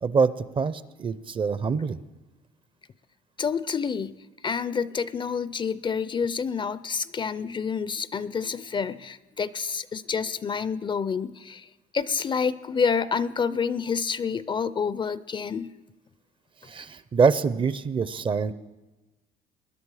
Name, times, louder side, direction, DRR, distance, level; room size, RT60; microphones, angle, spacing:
voice 1, 0.0-2.0 16.6-18.5, right 5 dB, 30° right, 16 dB, 0.5 m, -25 dB
voice 2, 3.4-11.7 11.9-15.7, left 6 dB, 30° left, 16 dB, 0.4 m, -28 dB
20.5 x 11.0 x 4.8 m, 1.1 s
cardioid pair, 110°, 17 cm